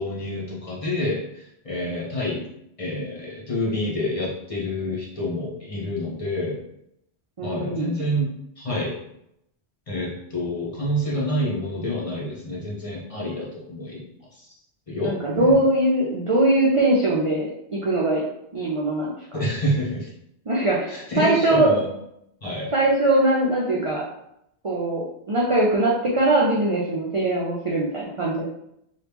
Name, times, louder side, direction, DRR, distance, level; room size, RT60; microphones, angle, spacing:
voice 1, 0.0-2.4 2.8-6.6 7.4-8.3 8.6-8.9 9.9-14.1 14.3-14.5 14.9-15.6 19.3-20.1 20.9-21.9 22.4-22.7, left 1 dB, 30° left, -7 dB, 0.9 m, -28 dB
voice 2, 7.4-8.0 15.0-18.2 18.5-19.2 20.5-21.7 22.7-24.0 24.6-28.4, right 1 dB, 50° right, -5 dB, 0.4 m, -21 dB
3.0 x 2.4 x 3.4 m, 0.78 s
omnidirectional pair, 1.2 m